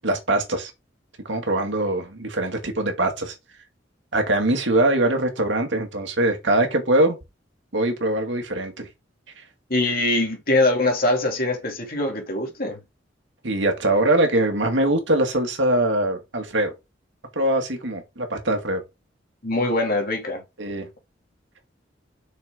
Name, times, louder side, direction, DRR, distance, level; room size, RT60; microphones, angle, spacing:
voice 1, 0.0-0.7 1.3-3.3 4.1-7.2 7.7-8.9 13.4-16.7 17.4-18.8 20.6-20.9, right 1 dB, 80° right, 2.2 m, -22 dB
voice 2, 9.7-12.8 19.4-20.4, left 2 dB, 55° left, 2.6 m, -23 dB
6.5 x 6.4 x 3.8 m
head